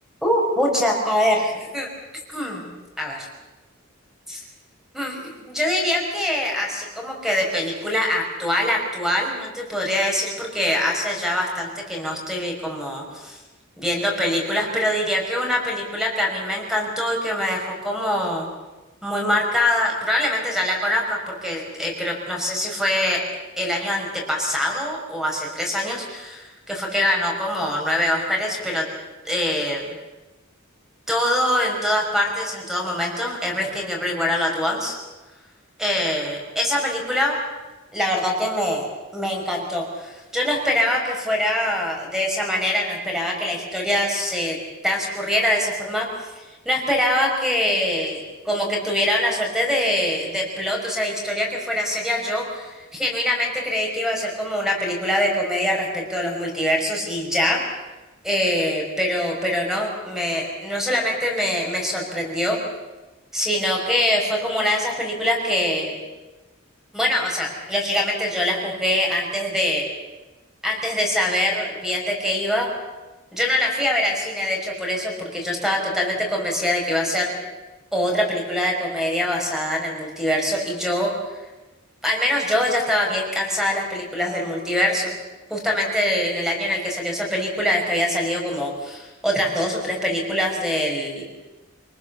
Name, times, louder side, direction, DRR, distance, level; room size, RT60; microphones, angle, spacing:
voice 1, 0.2-1.9 2.3-2.7 3.0-3.3 4.3-4.4 4.9-13.4 13.8-18.5 19.0-23.2 23.6-28.9 29.3-29.8 31.1-35.0 35.8-37.4 37.9-38.9 39.1-44.6 44.8-46.1 46.7-57.6 58.2-62.6 63.3-66.0 66.9-69.8 70.6-72.7 73.3-77.3 77.9-81.1 82.0-85.1 85.5-91.2, left 1 dB, ahead, -1 dB, 5.8 m, -24 dB
27.0 x 19.5 x 7.2 m, 1.2 s
head